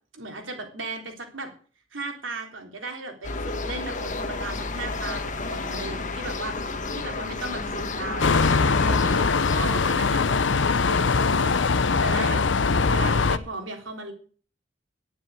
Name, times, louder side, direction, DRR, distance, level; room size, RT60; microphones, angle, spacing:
voice 1, 0.1-1.5 1.9-12.4 12.9-14.1, right 2 dB, 85° right, 4 dB, 3.6 m, -36 dB
sound 1, 3.2-9.9, left 3 dB, 40° left, 1.4 m, -32 dB
sound 2, 8.2-13.4, left 4 dB, 70° left, 0.8 m, -21 dB
11.0 x 9.3 x 8.2 m, 0.43 s
head